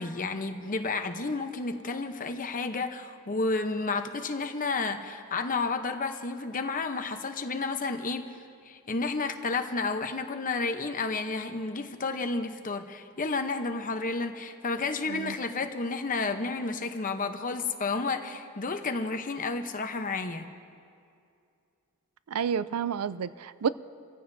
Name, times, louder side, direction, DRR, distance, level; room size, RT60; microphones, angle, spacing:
voice 1, 0.0-8.3 8.7-20.5, left 3 dB, 40° left, 0.9 m, -31 dB
voice 2, 22.3-23.7, right 7 dB, 80° right, 0.4 m, -30 dB
27.5 x 15.0 x 2.7 m
head